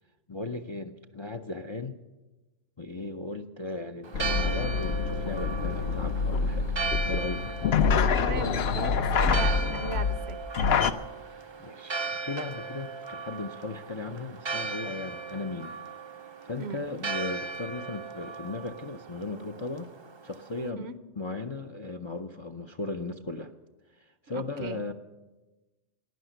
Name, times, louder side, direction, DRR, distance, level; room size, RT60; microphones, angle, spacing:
voice 1, 0.3-2.0 2.8-6.7 7.0-7.6 11.2-15.7 16.4-19.9 20.2-20.9 21.2-23.5 24.2-24.9, left 3 dB, 35° left, 8 dB, 0.5 m, -36 dB
Church bell, 4.0-20.7, right 4 dB, 35° right, 0.5 m, -37 dB
sound 1, 4.1-10.9, left 5 dB, 60° left, 0.9 m, -26 dB
voice 2, 8.1-10.4 16.6-16.8 20.8-21.0 24.3-24.8, right 5 dB, 65° right, 13 dB, 0.9 m, -37 dB
16.0 x 10.5 x 7.9 m, 1.2 s
omnidirectional pair, 1.3 m